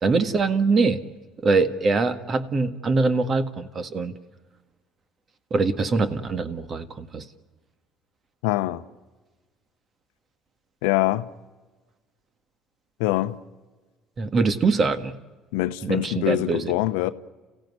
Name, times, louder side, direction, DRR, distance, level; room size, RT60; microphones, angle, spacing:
voice 1, 0.0-1.0 1.4-4.1 5.5-7.2 14.2-15.1 15.8-16.7, right 4 dB, 40° right, 1.7 m, -23 dB
voice 2, 8.4-8.8 10.8-11.3 13.0-13.4 15.5-17.1, left 17 dB, 85° left, 0.8 m, -24 dB
29.5 x 16.0 x 9.7 m
supercardioid pair, 80°, 0 cm